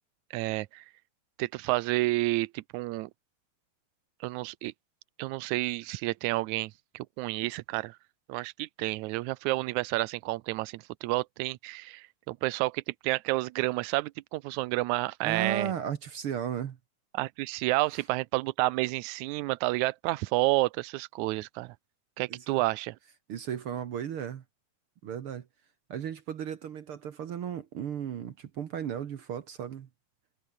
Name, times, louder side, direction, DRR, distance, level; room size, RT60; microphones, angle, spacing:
voice 1, 0.3-0.8 1.4-3.1 4.2-4.7 5.2-8.0 8.3-15.7 17.1-21.8 22.2-23.0, right 20 dB, 80° right, 2.0 m, -30 dB
voice 2, 15.2-16.8 17.9-18.0 22.3-22.6 23.3-24.4 25.0-25.5 25.9-29.9, right 9 dB, 55° right, 1.8 m, -35 dB
omnidirectional pair, 3.4 m